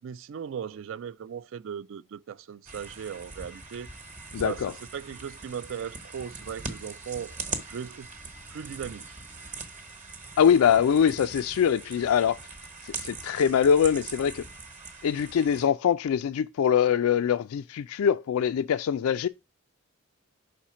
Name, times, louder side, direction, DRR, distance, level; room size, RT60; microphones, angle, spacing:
voice 1, 0.0-3.9 4.4-7.3 7.7-8.1 8.5-9.0, right 7 dB, 55° right, 0.3 m, -38 dB
sound 1, 2.7-15.6, right 4 dB, 30° right, 1.1 m, -41 dB
voice 2, 4.3-4.7 10.4-12.4 12.8-14.4 15.0-19.3, left 8 dB, 75° left, 0.3 m, -23 dB
5.6 x 4.3 x 6.1 m
head